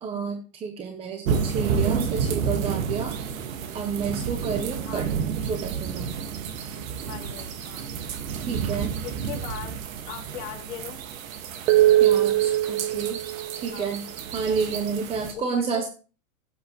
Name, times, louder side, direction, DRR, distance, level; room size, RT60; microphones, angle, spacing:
voice 1, 0.0-3.1 3.7-5.1 5.4-6.1 8.4-8.9 12.0-13.2 13.5-14.1 14.3-15.9, right 5 dB, 15° right, 5 dB, 0.7 m, -30 dB
sound 1, 1.3-15.3, right 9 dB, 65° right, 1.8 m, -27 dB
voice 2, 7.0-7.9 9.0-9.8 10.1-11.0 13.7-13.9 15.3-15.9, left 9 dB, 45° left, -2 dB, 4.0 m, -39 dB
16.0 x 8.0 x 3.1 m, 0.38 s
supercardioid pair, 155°, 45 cm